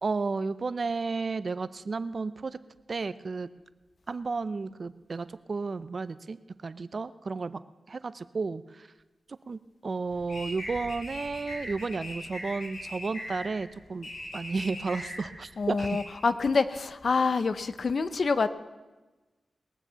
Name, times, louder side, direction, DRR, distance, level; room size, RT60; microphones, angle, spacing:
voice 1, 0.0-2.6 2.9-3.5 4.1-7.6 7.9-8.9 9.5-16.0, right 4 dB, 55° right, 15 dB, 0.6 m, -33 dB
sound 1, 10.1-16.0, left 1 dB, 85° left, 4.0 m, -40 dB
voice 2, 15.6-18.5, left 4 dB, 60° left, 13 dB, 0.7 m, -26 dB
20.5 x 7.3 x 6.9 m, 1.2 s
cardioid pair, 60°, 0 cm